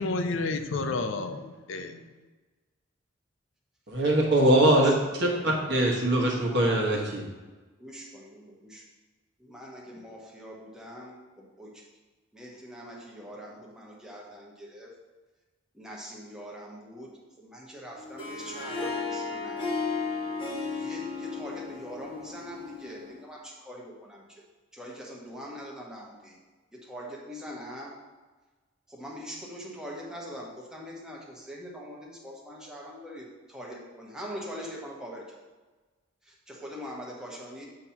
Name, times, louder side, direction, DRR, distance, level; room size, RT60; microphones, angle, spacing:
voice 1, 0.0-2.1, left 3 dB, 65° left, 8 dB, 0.5 m, -31 dB
voice 2, 3.9-7.3, right 1 dB, 55° right, -1 dB, 1.3 m, -23 dB
voice 3, 4.4-4.9 7.8-8.8 9.4-11.9 12.3-14.9 15.7-17.1 17.4-19.6 20.6-24.4 24.7-26.4 26.7-28.0 28.9-35.2 36.2-37.7, equal, 5° right, -3 dB, 1.0 m, -43 dB
Harp, 18.0-23.2, left 4 dB, 25° left, 1.1 m, -34 dB
7.8 x 2.8 x 5.7 m, 1.3 s
head